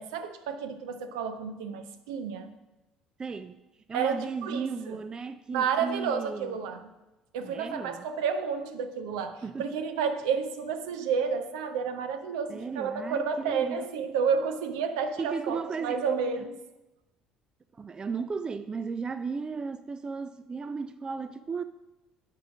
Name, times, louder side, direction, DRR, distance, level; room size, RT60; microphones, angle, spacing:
voice 1, 0.0-2.5 3.9-5.0 5.5-6.9 7.3-16.5, right 6 dB, 65° right, 0.8 m, -31 dB
voice 2, 3.2-3.6 3.9-6.6 7.4-8.0 9.4-9.7 12.5-13.9 15.2-16.1 17.7-21.6, right 5 dB, 25° right, 0.4 m, -35 dB
10.5 x 4.9 x 6.0 m
figure-of-eight pair, 55°, 3 cm